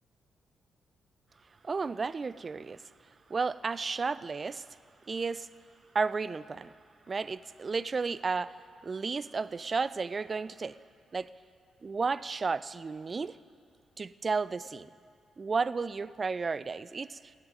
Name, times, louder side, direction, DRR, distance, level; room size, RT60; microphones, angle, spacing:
voice 1, 1.6-2.8 3.3-4.6 5.1-5.5 5.9-6.7 7.1-10.8 11.1-11.3 11.8-13.4 14.0-14.9 15.4-17.2, right 4 dB, 40° right, 16 dB, 0.4 m, -33 dB
13.5 x 8.8 x 9.6 m, 2.2 s
cardioid pair, 75°, 0 cm